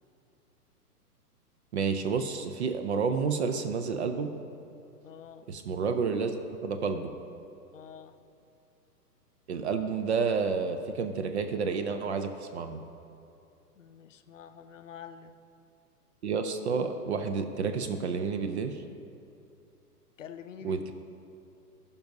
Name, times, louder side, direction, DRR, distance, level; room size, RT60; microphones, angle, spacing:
voice 1, 1.7-4.3 5.5-6.3 6.6-7.1 9.5-12.8 16.2-18.8 20.6-20.9, right 5 dB, 45° right, 7 dB, 0.5 m, -30 dB
voice 2, 5.0-5.5 7.7-8.2 13.8-15.3 20.2-20.9, left 8 dB, 55° left, 9 dB, 0.5 m, -47 dB
16.0 x 5.4 x 2.7 m, 2.6 s
figure-of-eight pair, 115°, 47 cm